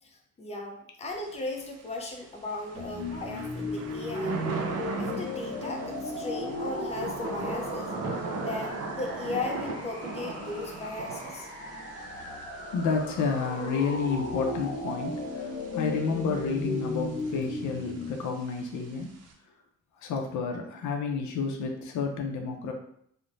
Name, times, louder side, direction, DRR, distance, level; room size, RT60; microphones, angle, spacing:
voice 1, 0.0-4.4 5.0-7.9 8.4-11.5, left 2 dB, 20° left, 1 dB, 0.5 m, -37 dB
Thunder / Rain, 1.1-19.3, right 3 dB, 55° right, 0.6 m, -40 dB
sound 1, 2.7-18.1, left 2 dB, 45° left, 0.9 m, -36 dB
voice 2, 12.7-19.1 20.0-22.7, left 5 dB, 70° left, 3 dB, 0.5 m, -30 dB
2.9 x 2.1 x 2.5 m, 0.70 s
cardioid pair, 90°, 30 cm